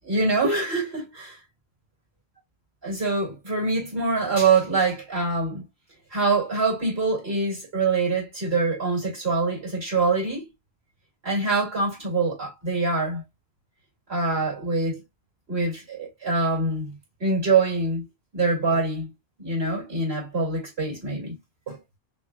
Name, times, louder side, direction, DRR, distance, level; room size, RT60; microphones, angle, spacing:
voice 1, 0.0-1.4 2.8-5.6 6.1-10.4 11.2-13.2 14.1-15.0 15.5-16.9 17.2-18.1 18.3-19.1 19.4-21.4 21.7-21.8, right 3 dB, 75° right, 2.7 m, -24 dB
5.8 x 2.4 x 2.2 m
omnidirectional pair, 1.1 m